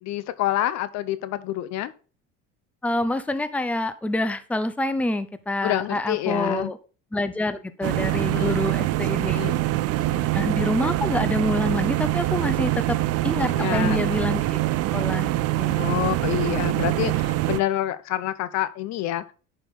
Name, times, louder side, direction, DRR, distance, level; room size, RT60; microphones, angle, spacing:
voice 1, 0.0-1.9 5.6-6.7 8.1-8.6 9.2-9.6 9.9-10.3 13.5-14.0 15.7-19.2, left 13 dB, 70° left, 15 dB, 0.9 m, -28 dB
voice 2, 2.8-6.8 7.1-9.5 10.3-13.0 13.2-15.9, left 1 dB, 5° left, 12 dB, 0.7 m, -27 dB
sound 1, 7.8-17.6, right 16 dB, 55° right, 0.6 m, -24 dB
10.5 x 5.2 x 3.7 m, 0.36 s
cardioid pair, 110°, 29 cm